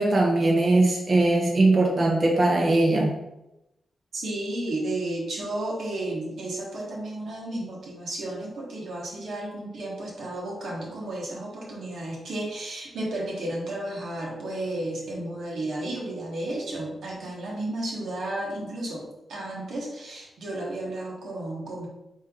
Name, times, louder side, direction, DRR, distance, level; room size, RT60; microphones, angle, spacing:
voice 1, 0.0-3.1, right 2 dB, 45° right, -2 dB, 0.9 m, -20 dB
voice 2, 4.1-21.9, right 1 dB, 80° right, -3 dB, 1.3 m, -33 dB
4.2 x 3.3 x 3.7 m, 0.91 s
cardioid pair, 60°, 0 cm